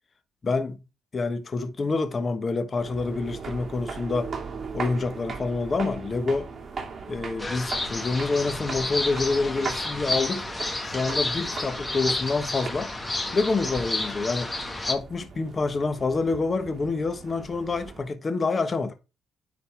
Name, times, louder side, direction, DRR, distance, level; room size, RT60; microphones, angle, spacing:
voice 1, 0.4-0.8 1.1-4.3 4.7-6.5 7.1-10.5 10.8-12.9 13.3-14.5 14.9-18.9, left 3 dB, 35° left, 1.3 m, -27 dB
sound 1, 2.8-18.1, right 5 dB, 45° right, 2.4 m, -39 dB
sound 2, 7.4-14.9, left 2 dB, 15° left, 1.6 m, -30 dB
10.0 x 4.2 x 3.4 m
cardioid pair, 90°, 0 cm